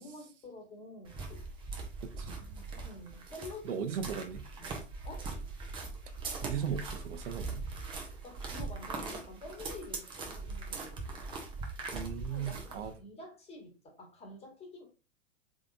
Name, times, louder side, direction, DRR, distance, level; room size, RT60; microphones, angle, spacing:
voice 1, 0.0-1.4 2.7-3.8 4.6-5.3 8.2-11.2 12.3-14.8, left 2 dB, 15° left, 1.2 m, -49 dB
sound 1, 1.1-12.9, right 3 dB, 15° right, 0.5 m, -41 dB
voice 2, 2.0-2.7 3.6-4.5 6.4-7.7 11.9-12.9, right 8 dB, 65° right, 0.7 m, -37 dB
3.6 x 3.6 x 2.4 m
hypercardioid pair, 120°, 39 cm